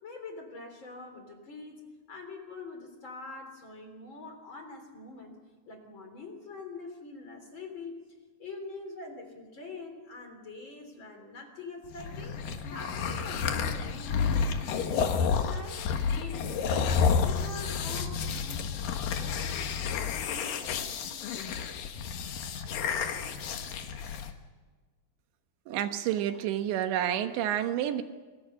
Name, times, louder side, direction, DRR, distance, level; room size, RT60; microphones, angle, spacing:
voice 1, 0.0-1.8 2.1-5.4 5.7-8.0 8.4-12.4 12.7-15.8 16.1-17.0 17.2-21.4, left 3 dB, 30° left, 4 dB, 3.8 m, -44 dB
sound 1, 11.9-24.3, left 6 dB, 60° left, 2.8 m, -30 dB
voice 2, 25.7-28.0, right 11 dB, 90° right, 8 dB, 3.6 m, -29 dB
28.0 x 23.0 x 5.7 m, 1.4 s
omnidirectional pair, 5.0 m